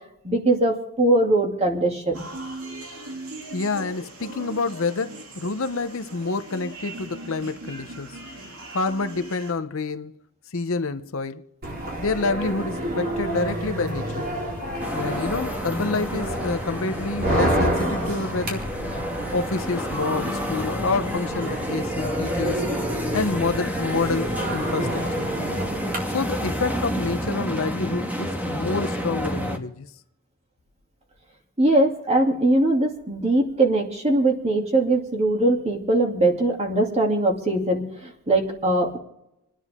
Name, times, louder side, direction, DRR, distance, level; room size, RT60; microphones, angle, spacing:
voice 1, 0.2-2.3 31.6-39.0, right 2 dB, 30° right, 2.6 m, -21 dB
sound 1, 2.1-9.5, right 2 dB, 85° right, 2.8 m, -39 dB
voice 2, 3.5-8.2 8.7-10.2 10.5-11.4 12.0-14.3 14.9-18.7 19.3-22.6 23.1-25.3 26.1-29.9, left 3 dB, 65° left, 0.8 m, -28 dB
sound 2, 11.6-26.0, right 1 dB, 45° right, 4.3 m, -29 dB
sound 3, 14.8-29.6, equal, 10° right, 1.4 m, -30 dB
29.5 x 10.0 x 3.6 m
head